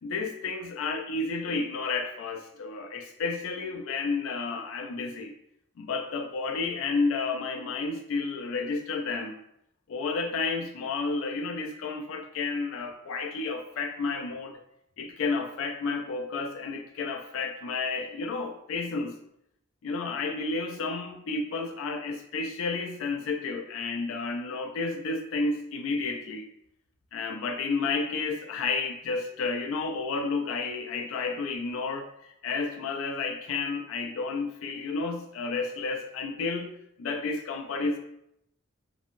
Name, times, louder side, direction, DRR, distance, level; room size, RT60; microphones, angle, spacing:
voice 1, 0.0-5.3 5.8-9.4 9.9-14.6 15.0-19.1 19.8-26.4 27.1-32.1 32.4-38.0, left 4 dB, 85° left, 4 dB, 0.3 m, -31 dB
2.6 x 2.6 x 2.5 m, 0.76 s
head